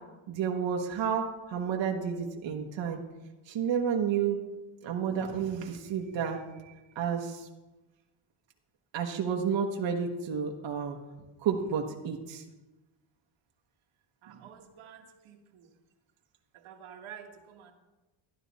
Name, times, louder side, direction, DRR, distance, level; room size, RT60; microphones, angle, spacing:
voice 1, 0.3-1.2 1.5-3.0 3.5-4.4 4.8-6.4 7.0-7.4 8.9-11.0 11.4-12.4, right 7 dB, 60° right, 1 dB, 1.3 m, -30 dB
voice 2, 14.2-15.7 16.5-17.7, right 8 dB, 80° right, 4 dB, 1.5 m, -49 dB
12.0 x 11.0 x 4.2 m, 1.1 s
cardioid pair, 125°, 48 cm